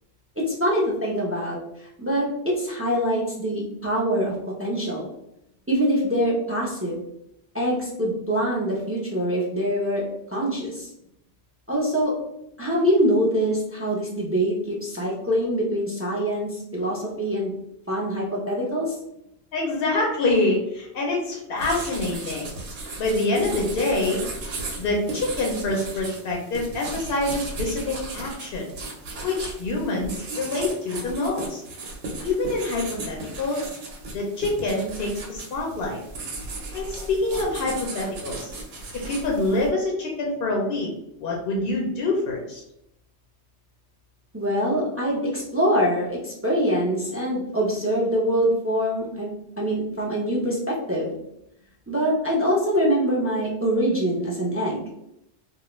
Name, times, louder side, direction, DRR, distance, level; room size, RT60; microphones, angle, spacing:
voice 1, 0.4-1.6 2.0-5.1 5.7-7.0 7.5-10.0 10.3-10.9 11.7-12.2 12.6-17.5 17.9-18.9 44.3-49.3 49.6-51.2 51.9-54.8, equal, 25° right, -5 dB, 0.3 m, -24 dB
voice 2, 19.5-22.5 23.0-24.2 24.8-28.7 29.2-31.6 32.2-33.7 34.1-36.0 36.7-38.5 38.9-40.9 41.2-42.6, left 2 dB, 65° left, -1 dB, 0.7 m, -26 dB
sound 1, 21.6-39.7, right 2 dB, 85° right, 1.0 m, -36 dB
2.3 x 2.1 x 3.0 m, 0.81 s
omnidirectional pair, 1.2 m